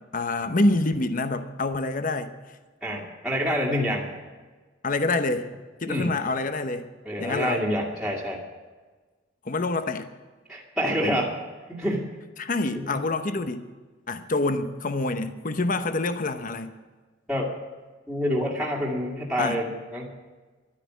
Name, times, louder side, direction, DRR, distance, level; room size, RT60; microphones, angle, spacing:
voice 1, 0.1-2.3 4.8-5.5 5.8-6.9 7.2-7.6 9.4-10.1 12.4-13.6 14.1-16.7 19.4-19.6, left 2 dB, 40° left, 10 dB, 0.8 m, -26 dB
voice 2, 2.8-4.1 5.9-6.1 7.1-8.4 10.5-11.3 11.7-12.0 12.9-13.0 17.3-17.5 18.1-20.1, equal, ahead, -6 dB, 2.2 m, -27 dB
12.5 x 9.9 x 9.3 m, 1.3 s
head